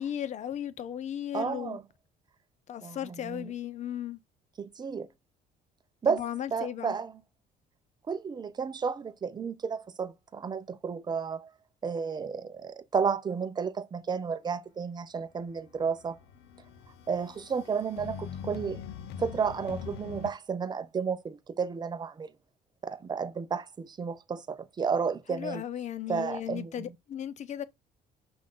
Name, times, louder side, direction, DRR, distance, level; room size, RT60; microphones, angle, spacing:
voice 1, 0.0-1.8 2.7-4.2 6.0-7.0 25.3-27.6, left 10 dB, 45° left, 0.6 m, -36 dB
voice 2, 1.3-1.8 2.8-3.5 4.6-5.1 6.0-6.2 6.5-7.1 8.1-11.5 11.8-16.2 17.1-18.8 19.2-22.3 22.8-25.6 26.1-26.7, right 6 dB, 25° right, 0.5 m, -32 dB
sound 1, 15.5-20.3, left 7 dB, 85° left, 0.6 m, -43 dB
5.6 x 2.5 x 3.7 m
cardioid pair, 110°, 17 cm